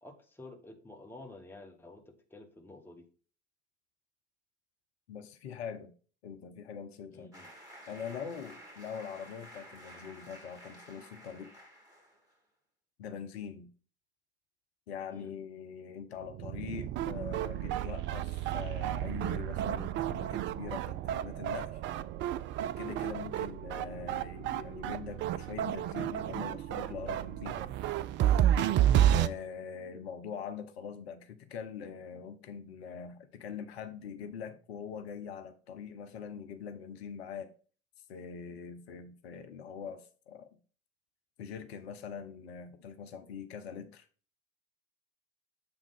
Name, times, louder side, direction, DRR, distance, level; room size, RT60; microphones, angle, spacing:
voice 1, 0.0-3.1 7.1-7.5 15.1-15.3 28.9-29.2, left 2 dB, 5° left, 1.4 m, -51 dB
voice 2, 5.1-5.9 6.2-7.4 7.9-11.5 13.0-13.7 14.9-21.8 22.8-27.7 29.1-37.5 38.1-40.5 41.4-44.1, left 7 dB, 70° left, 0.7 m, -43 dB
sound 1, 7.3-12.4, equal, 10° right, 2.7 m, -52 dB
sound 2, 16.3-29.3, right 11 dB, 35° right, 0.4 m, -31 dB
7.8 x 3.6 x 5.4 m
figure-of-eight pair, 70°, 33 cm